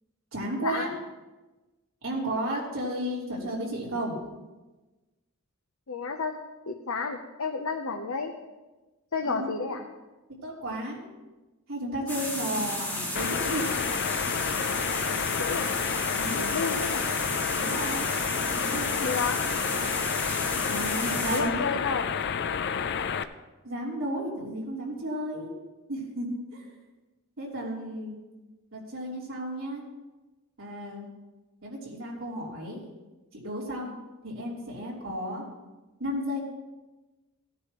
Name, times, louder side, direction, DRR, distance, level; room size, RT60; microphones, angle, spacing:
voice 1, 0.3-0.9 2.0-4.2 9.2-9.8 10.4-11.1 11.7-13.7 16.1-16.4 17.5-18.1 18.6-19.2 20.7-21.5 23.6-25.5 25.9-26.6 27.4-28.1 28.7-29.8 30.6-31.1 31.6-32.8 33.3-34.0 34.2-35.4 36.0-36.4, right 1 dB, 70° right, -5 dB, 3.6 m, -33 dB
voice 2, 5.9-6.3 6.7-8.3 9.1-9.8 15.1-15.7 16.3-17.1 19.0-19.4 21.3-22.1, left 4 dB, 80° left, 3 dB, 0.8 m, -31 dB
sound 1, 12.1-21.4, left 1 dB, 10° left, 2.6 m, -33 dB
sound 2, 13.2-23.2, left 7 dB, 55° left, 0.5 m, -30 dB
17.5 x 9.8 x 3.1 m, 1.1 s
head